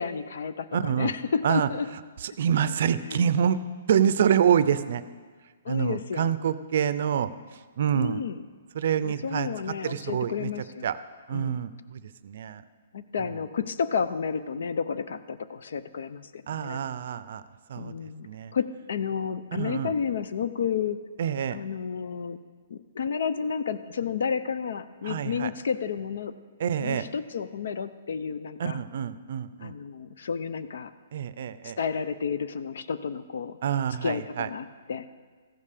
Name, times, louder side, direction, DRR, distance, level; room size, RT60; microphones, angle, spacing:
voice 1, 0.0-1.9 3.1-3.2 5.6-6.3 7.9-8.4 9.0-10.9 11.3-11.6 12.9-16.8 17.8-21.0 21.5-22.4 22.7-26.3 26.8-28.8 29.6-30.9 31.8-33.6 34.0-35.1, left 6 dB, 70° left, 13 dB, 0.6 m, -31 dB
voice 2, 0.7-1.1 1.4-1.7 2.2-3.6 3.9-5.0 5.7-7.3 7.8-8.2 8.7-10.5 10.8-11.0 11.3-12.6 13.2-13.3 16.5-17.4 17.7-17.9 18.2-18.5 19.5-19.9 21.2-21.6 25.0-25.5 26.6-27.0 28.6-29.7 31.1-31.8 33.6-34.5, right 8 dB, 55° right, 14 dB, 0.5 m, -26 dB
14.5 x 5.5 x 6.6 m, 1.5 s
hypercardioid pair, 165°, 0 cm